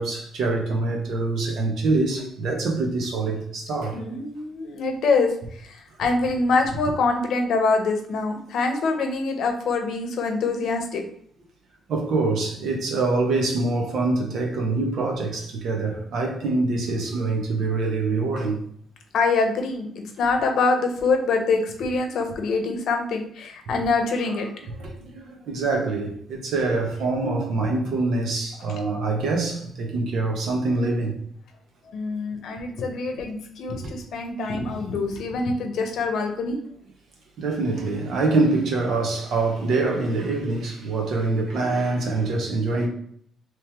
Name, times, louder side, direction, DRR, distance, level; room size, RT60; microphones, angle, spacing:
voice 1, 0.0-4.0 6.0-6.1 11.9-18.6 24.7-31.1 33.8-33.9 37.4-42.9, right 3 dB, 70° right, 1.0 m, -25 dB
voice 2, 3.9-5.3 6.0-11.0 19.1-19.9 20.2-24.5 31.9-36.6, left 3 dB, 70° left, 0.7 m, -24 dB
3.2 x 3.0 x 3.4 m
cardioid pair, 90°, 0 cm